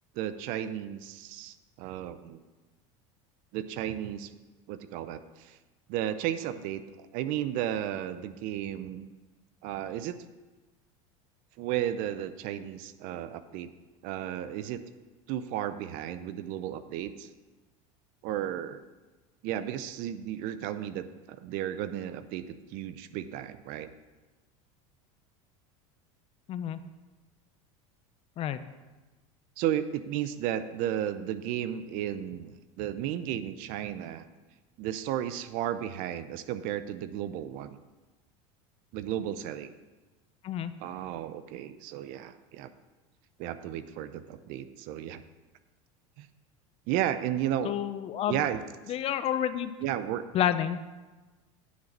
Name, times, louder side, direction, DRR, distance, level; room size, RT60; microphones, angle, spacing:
voice 1, 0.2-2.4 3.5-4.3 4.7-5.6 5.9-9.1 9.6-10.2 11.6-13.7 14.0-14.8 15.3-17.3 18.2-18.8 19.4-23.9 29.6-34.2 34.8-37.8 38.9-39.7 40.8-42.7 43.4-45.2 46.2-46.3 46.9-47.7 48.3-48.6 49.8-50.3, right 11 dB, 60° right, 12 dB, 0.6 m, -33 dB
voice 2, 26.5-26.8 28.4-28.6 40.4-40.7 47.6-48.4 48.9-49.7 50.3-50.8, left 10 dB, 40° left, 12 dB, 0.5 m, -29 dB
9.5 x 4.0 x 7.3 m, 1.2 s
supercardioid pair, 120°, 16 cm